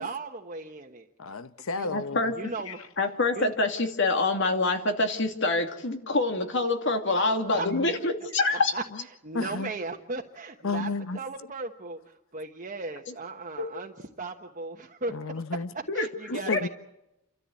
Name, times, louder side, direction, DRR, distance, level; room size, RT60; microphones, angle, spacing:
voice 1, 0.0-1.1 1.7-1.9 2.4-2.9 3.4-3.5 7.6-7.7 8.5-8.8 9.2-13.9 14.2-15.1 15.9-16.7, right 3 dB, 40° right, 1.3 m, -36 dB
voice 2, 1.2-2.3 2.7-2.8 7.6-7.9 9.3-9.7 10.6-11.2 15.1-15.7 16.3-16.7, left 3 dB, 80° left, 0.9 m, -32 dB
voice 3, 1.9-2.3 3.0-8.7 13.6-13.7 15.9-16.1 16.5-16.6, left 3 dB, 60° left, 2.6 m, -26 dB
29.0 x 13.5 x 8.5 m
head